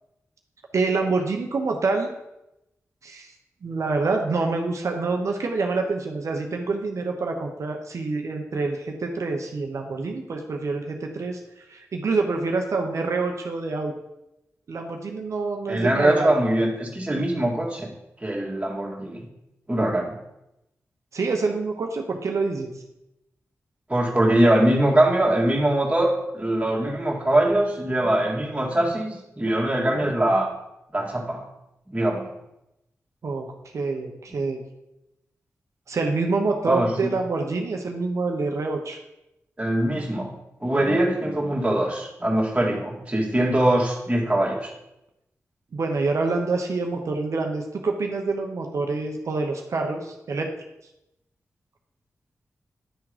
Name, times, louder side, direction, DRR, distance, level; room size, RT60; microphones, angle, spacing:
voice 1, 0.7-2.1 3.0-3.3 3.6-13.9 14.7-16.3 21.1-22.7 33.2-34.6 35.9-39.0 45.7-50.5, right 3 dB, 70° right, 2 dB, 0.9 m, -26 dB
voice 2, 15.7-17.9 18.2-19.3 19.7-20.2 23.9-30.5 30.9-31.4 31.9-32.3 36.7-37.1 39.6-44.7, right 1 dB, 20° right, -2 dB, 2.0 m, -22 dB
10.0 x 3.6 x 5.0 m, 0.89 s
cardioid pair, 55°, 5 cm